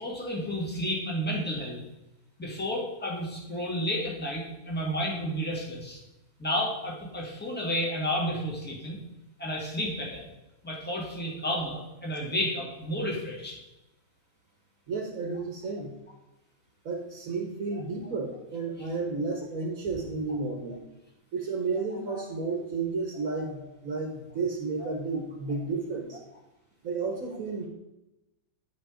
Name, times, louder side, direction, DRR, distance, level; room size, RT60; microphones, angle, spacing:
voice 1, 0.0-1.8 2.4-6.0 6.4-9.0 9.4-10.2 10.6-13.5 22.1-22.2, equal, 5° left, -4 dB, 1.9 m, -31 dB
voice 2, 14.9-16.0 16.8-20.8 21.3-26.2 26.8-27.6, right 4 dB, 70° right, 1 dB, 1.6 m, -32 dB
11.5 x 4.0 x 5.0 m, 0.97 s
omnidirectional pair, 1.5 m